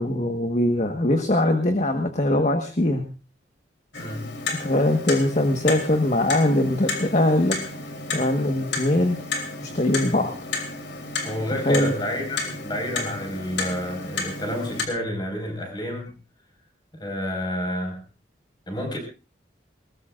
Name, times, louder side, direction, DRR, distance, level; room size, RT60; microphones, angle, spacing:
voice 1, 0.0-3.0 4.6-7.6 8.1-9.2 9.6-10.3 11.6-11.9, left 1 dB, 40° left, 5 dB, 1.4 m, -21 dB
Clock, 3.9-14.9, left 3 dB, 90° left, 3.1 m, -32 dB
voice 2, 4.0-4.4 11.2-16.1 16.9-18.0 18.7-19.0, equal, 25° left, 3 dB, 5.1 m, -30 dB
20.5 x 20.0 x 2.5 m, 0.32 s
head